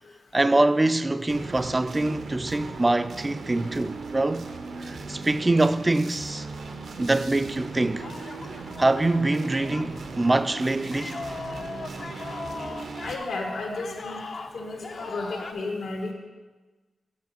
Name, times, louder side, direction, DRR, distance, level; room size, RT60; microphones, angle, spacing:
voice 1, 0.3-4.5 4.8-6.5 7.0-8.1 8.8-11.2, right 2 dB, 20° right, 0.3 m, -24 dB
sound 1, 1.3-13.2, right 4 dB, 70° right, 0.7 m, -38 dB
sound 2, 7.9-15.5, left 3 dB, 55° left, 0.6 m, -39 dB
voice 2, 13.0-14.2 14.5-16.1, left 2 dB, 80° left, 1.5 m, -33 dB
7.7 x 5.9 x 5.6 m
wide cardioid pair, 105°, 0 cm